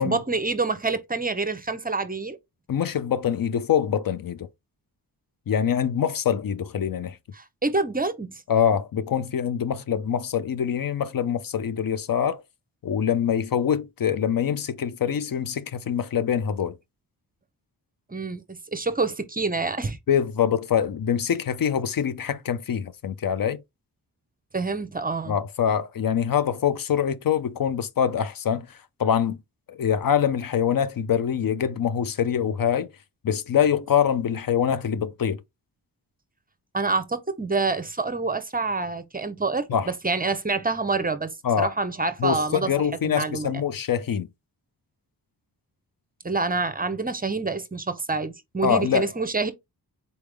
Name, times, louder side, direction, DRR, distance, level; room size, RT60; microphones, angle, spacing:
voice 1, 0.0-2.4 7.3-8.4 18.1-20.0 24.5-25.4 36.7-42.7 43.0-43.5 46.2-49.5, right 3 dB, 20° right, 0.7 m, -27 dB
voice 2, 2.7-4.5 5.5-7.2 8.5-12.4 12.8-16.8 20.1-23.6 25.3-29.4 29.7-32.9 33.2-35.4 39.7-39.9 41.4-41.7 42.2-44.3 48.6-49.1, left 8 dB, 55° left, 0.6 m, -24 dB
4.3 x 3.4 x 3.3 m
cardioid pair, 80°, 40 cm